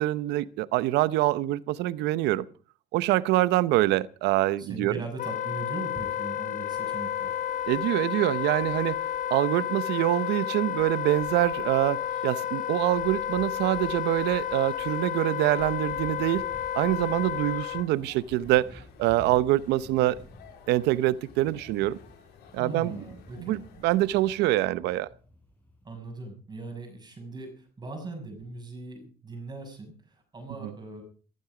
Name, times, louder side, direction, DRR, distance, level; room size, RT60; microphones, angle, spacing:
voice 1, 0.0-2.4 2.9-4.9 7.7-9.0 9.3-16.4 16.7-20.2 20.7-22.0 22.5-22.9 23.4-25.1 30.6-30.7, right 16 dB, 90° right, 0.9 m, -25 dB
voice 2, 4.6-7.4 22.6-23.6 25.8-31.0, right 2 dB, 25° right, 6.5 m, -40 dB
Wind instrument woodwind instrument, 5.2-17.9, left 10 dB, 50° left, 1.1 m, -31 dB
sound 1, 6.7-24.5, left 6 dB, 80° left, 4.2 m, -53 dB
sound 2, 15.8-26.0, left 1 dB, 10° left, 6.5 m, -53 dB
15.0 x 15.0 x 5.0 m
cardioid pair, 110°, 17 cm